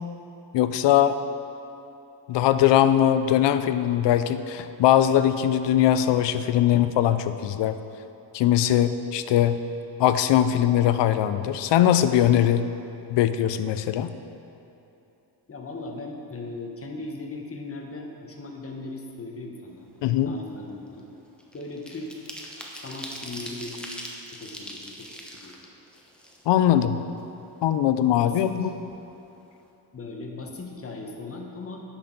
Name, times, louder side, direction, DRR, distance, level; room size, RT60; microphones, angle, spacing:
voice 1, 0.5-1.2 2.3-7.8 8.3-9.6 10.0-12.6 13.1-14.1 20.0-20.3 26.5-27.0 27.6-28.7, left 11 dB, 75° left, 11 dB, 0.5 m, -21 dB
voice 2, 15.5-19.9 20.2-21.1 21.5-22.4 22.8-23.9 24.4-25.6 28.1-28.7 29.9-31.8, left 2 dB, 30° left, 1 dB, 1.1 m, -38 dB
sound 1, 19.8-20.0 20.4-26.8 27.2-27.3 27.6-28.6 28.9-29.0 29.3-29.6, equal, ahead, 1.0 m, -41 dB
9.9 x 6.2 x 3.9 m, 2.8 s
cardioid pair, 95°, 44 cm